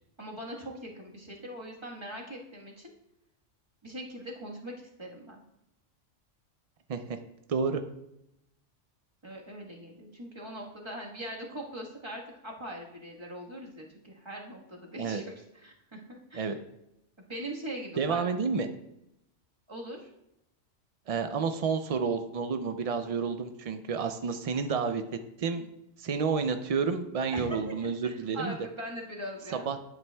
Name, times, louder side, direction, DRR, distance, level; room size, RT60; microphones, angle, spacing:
voice 1, 0.2-2.9 3.8-5.4 9.2-16.6 17.2-18.2 19.7-20.1 23.0-23.1 24.7-24.8 27.3-29.7, right 1 dB, 25° right, -2 dB, 1.4 m, -41 dB
voice 2, 7.5-7.8 15.0-15.2 16.3-16.6 18.0-18.7 21.1-25.0 25.4-25.7 26.0-28.6 29.5-29.8, right 5 dB, 75° right, 8 dB, 0.3 m, -30 dB
10.5 x 8.7 x 2.3 m, 0.85 s
omnidirectional pair, 1.2 m